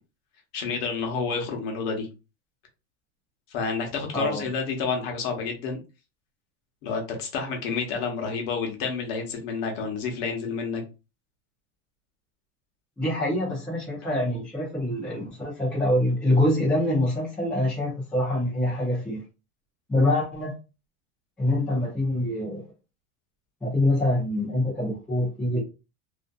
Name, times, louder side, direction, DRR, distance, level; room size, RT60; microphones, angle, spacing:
voice 1, 0.5-2.1 3.5-5.8 6.8-10.8, left 5 dB, 45° left, 0.9 m, -29 dB
voice 2, 13.0-19.2 19.9-20.5 21.4-22.6 23.6-25.6, left 1 dB, 5° left, 0.4 m, -25 dB
2.6 x 2.4 x 2.2 m
supercardioid pair, 160°, 39 cm